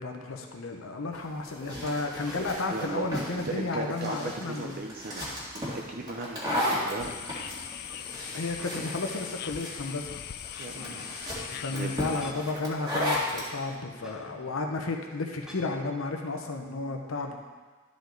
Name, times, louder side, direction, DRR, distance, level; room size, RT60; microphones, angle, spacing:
voice 1, 0.0-4.8 8.3-10.2 10.7-11.0 11.5-17.3, left 3 dB, 90° left, 3 dB, 0.8 m, -33 dB
sound 1, 1.1-13.5, left 1 dB, 20° right, 2.1 m, -35 dB
sound 2, 2.2-2.7 3.2-4.7 5.1-5.8 6.1-6.9 7.3-9.0 9.4-9.5 10.5-12.5 14.0-14.2 15.4-15.7, equal, 5° right, 1.1 m, -51 dB
voice 2, 2.7-3.1 3.5-7.2 10.6-11.2 11.7-12.2 14.3-14.5, right 3 dB, 45° right, 1 dB, 0.6 m, -37 dB
sound 3, 7.0-12.3, left 11 dB, 50° left, 0.3 m, -40 dB
12.0 x 5.2 x 3.9 m, 1.4 s
head